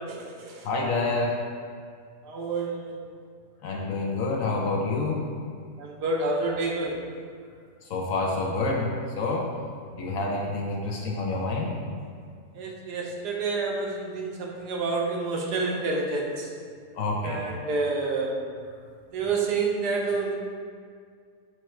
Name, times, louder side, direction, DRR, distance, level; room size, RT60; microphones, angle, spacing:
voice 1, 0.0-0.7 2.2-3.0 5.8-7.1 12.5-16.5 17.2-18.5 19.1-20.4, right 3 dB, 80° right, -1 dB, 1.5 m, -29 dB
voice 2, 0.6-1.4 3.6-5.2 7.9-8.9 9.2-9.5 9.9-11.7 17.0-17.4, left 3 dB, 60° left, -1 dB, 1.0 m, -27 dB
8.1 x 3.0 x 4.4 m, 2.1 s
omnidirectional pair, 1.7 m